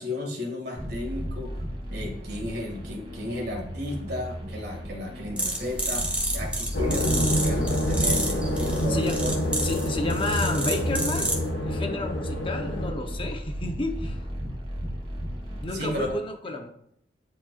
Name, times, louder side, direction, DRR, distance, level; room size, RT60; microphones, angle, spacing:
voice 1, 0.0-1.5 1.9-9.3 15.7-16.1 16.5-16.6, left 1 dB, 65° right, 1 dB, 2.0 m, -34 dB
sound 1, 0.7-16.1, equal, 35° right, 1.9 m, -36 dB
sound 2, 5.4-11.5, right 1 dB, 5° right, 1.3 m, -30 dB
sound 3, 6.7-12.9, equal, 80° left, 1.1 m, -27 dB
voice 2, 8.9-11.3 11.6-14.2 15.6-16.7, left 2 dB, 30° left, 4 dB, 0.8 m, -31 dB
10.0 x 4.3 x 2.4 m, 0.73 s
head